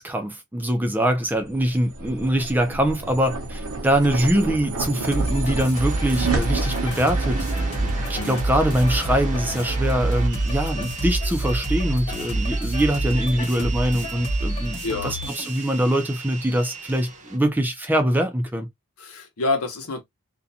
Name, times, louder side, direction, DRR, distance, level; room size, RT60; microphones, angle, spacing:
voice 1, 0.0-14.8 15.0-18.7, right 1 dB, 10° right, 0.4 m, -23 dB
sound 1, 1.3-11.8, right 3 dB, 65° right, 0.7 m, -32 dB
sound 2, 5.1-15.7, right 1 dB, 30° left, 1.3 m, -27 dB
sound 3, 5.7-17.4, right 5 dB, 35° right, 0.7 m, -37 dB
voice 2, 14.8-15.2 19.0-20.0, left 3 dB, 75° left, 0.8 m, -27 dB
2.5 x 2.2 x 2.6 m
head